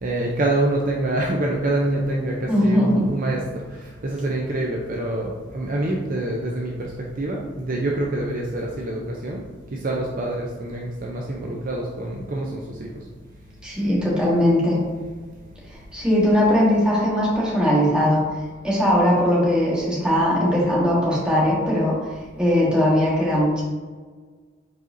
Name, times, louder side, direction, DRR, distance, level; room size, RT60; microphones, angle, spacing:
voice 1, 0.0-9.4 9.7-13.1 14.4-14.5, right 1 dB, 45° right, -1 dB, 0.5 m, -26 dB
voice 2, 2.5-3.0 13.6-14.8 15.9-18.2 18.6-22.0 22.4-23.6, equal, 5° right, -7 dB, 1.4 m, -19 dB
4.8 x 4.2 x 2.6 m, 1.4 s
head